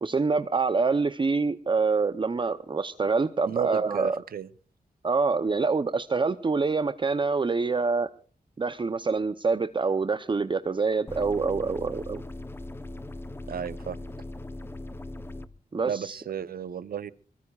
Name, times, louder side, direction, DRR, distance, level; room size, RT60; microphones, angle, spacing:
voice 1, 0.0-4.2 5.0-8.1 8.6-12.2 15.7-16.2, right 4 dB, 30° right, 11 dB, 0.7 m, -26 dB
voice 2, 3.5-4.5 13.5-14.0 15.8-17.1, right 8 dB, 70° right, 16 dB, 0.8 m, -33 dB
sound 1, 11.1-15.5, left 2 dB, 15° left, 0.8 m, -39 dB
23.0 x 22.5 x 2.4 m, 0.41 s
cardioid pair, 80°, 16 cm